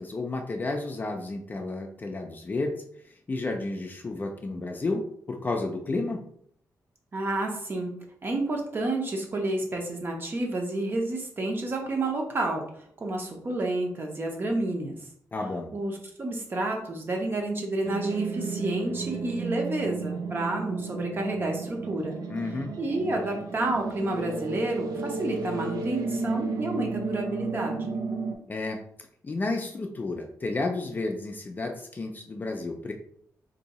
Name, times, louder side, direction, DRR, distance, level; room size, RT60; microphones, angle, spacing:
voice 1, 0.0-2.8 3.3-6.3 15.3-15.7 22.3-22.7 28.5-28.8 29.2-32.9, left 2 dB, 30° left, 4 dB, 0.4 m, -31 dB
voice 2, 7.1-7.9 8.2-12.6 13.0-15.0 15.7-22.2 22.8-27.9, right 2 dB, 35° right, 1 dB, 0.7 m, -30 dB
sound 1, 17.8-28.4, right 4 dB, 75° right, 0.5 m, -33 dB
2.8 x 2.7 x 4.1 m, 0.64 s
wide cardioid pair, 150°, 7 cm